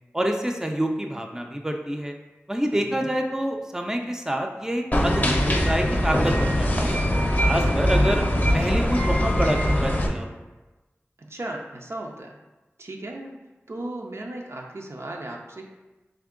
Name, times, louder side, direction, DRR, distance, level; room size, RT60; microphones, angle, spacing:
voice 1, 0.1-2.1 2.5-7.0 7.4-8.2 8.5-10.4, right 1 dB, 10° right, 3 dB, 0.4 m, -27 dB
voice 2, 2.7-3.1 11.2-12.4 12.8-13.4 13.7-15.7, right 1 dB, 70° right, 0 dB, 0.5 m, -36 dB
sound 1, 4.9-10.1, equal, 35° left, 0.6 m, -22 dB
3.5 x 2.8 x 3.7 m, 1.1 s
wide cardioid pair, 40°, 5 cm